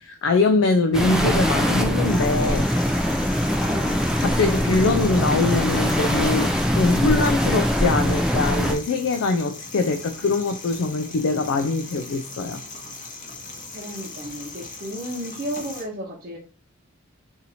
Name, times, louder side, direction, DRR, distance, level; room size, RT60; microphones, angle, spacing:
voice 1, 0.0-2.7 4.2-12.6, left 3 dB, 70° left, 0.4 m, -23 dB
sound 1, 0.9-8.7, equal, 5° right, 0.5 m, -22 dB
sound 2, 2.0-15.8, left 3 dB, 40° left, 0.8 m, -39 dB
voice 2, 3.6-4.0 13.7-16.4, equal, 50° right, 0.9 m, -33 dB
2.8 x 2.7 x 4.1 m
head